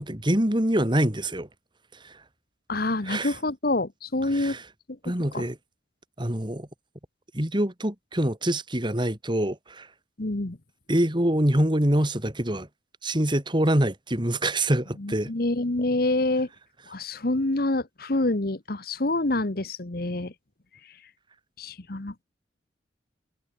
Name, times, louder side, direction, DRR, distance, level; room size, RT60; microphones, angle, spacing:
voice 1, 0.0-1.5 2.0-2.2 3.1-3.3 4.3-4.6 5.0-5.6 6.2-6.7 7.3-9.9 10.9-12.7 13.0-15.3, right 1 dB, 25° right, 2.7 m, -25 dB
voice 2, 2.7-4.6 4.9-5.0 5.3-5.5 10.2-10.6 15.0-16.5 16.9-20.3 21.6-22.2, left 2 dB, 55° left, 1.3 m, -27 dB
head